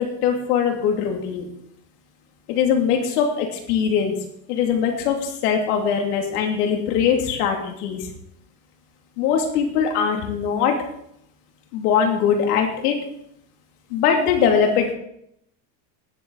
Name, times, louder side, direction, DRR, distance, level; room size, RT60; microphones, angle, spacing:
voice 1, 0.0-1.5 2.5-4.1 4.5-8.1 9.2-10.7 11.7-13.0 13.9-14.9, left 7 dB, 80° left, 2 dB, 2.9 m, -21 dB
19.0 x 7.9 x 4.1 m, 0.73 s
cardioid pair, 175°, 46 cm